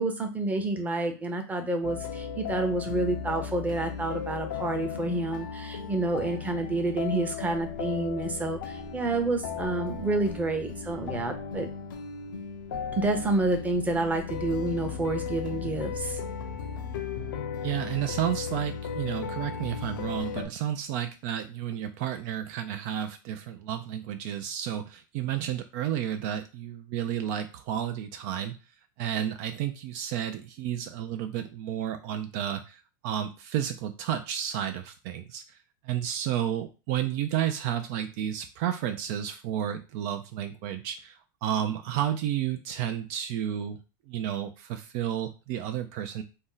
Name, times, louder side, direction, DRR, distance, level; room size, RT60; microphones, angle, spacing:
voice 1, 0.0-11.7 12.9-16.2, right 2 dB, 15° right, 5 dB, 0.7 m, -29 dB
sound 1, 1.8-20.5, left 6 dB, 85° left, 0.5 m, -36 dB
voice 2, 17.6-28.6 29.0-35.6 35.8-43.8 44.1-46.2, right 10 dB, 60° right, 8 dB, 0.3 m, -31 dB
2.6 x 2.1 x 3.8 m, 0.31 s
supercardioid pair, 115°, 11 cm